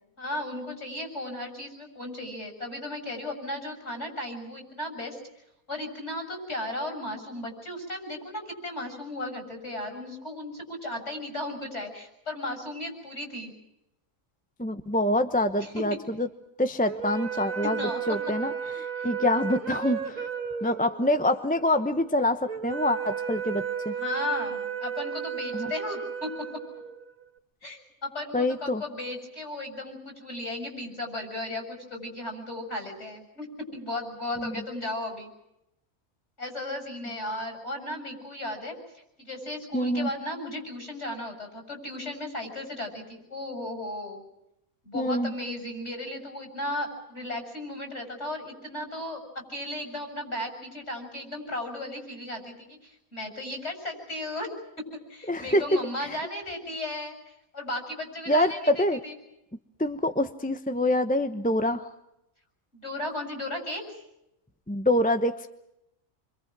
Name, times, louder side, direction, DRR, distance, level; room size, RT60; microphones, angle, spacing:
voice 1, 0.2-5.2 5.7-13.5 15.6-16.0 17.6-18.2 19.0-19.1 24.0-26.6 27.6-35.3 36.4-44.2 44.8-54.5 54.8-59.1 62.7-63.8, left 1 dB, 55° left, 4 dB, 7.9 m, -35 dB
voice 2, 14.6-16.3 16.6-20.3 20.6-23.9 25.5-25.7 28.3-28.8 34.4-34.5 39.7-40.1 44.9-45.3 55.3-55.6 56.0-56.2 58.3-59.0 59.8-61.9 64.7-65.5, left 1 dB, 5° left, 9 dB, 0.9 m, -26 dB
sound 1, 16.8-27.2, right 8 dB, 70° right, 2.2 m, -34 dB
28.0 x 25.0 x 6.2 m, 0.84 s
omnidirectional pair, 1.4 m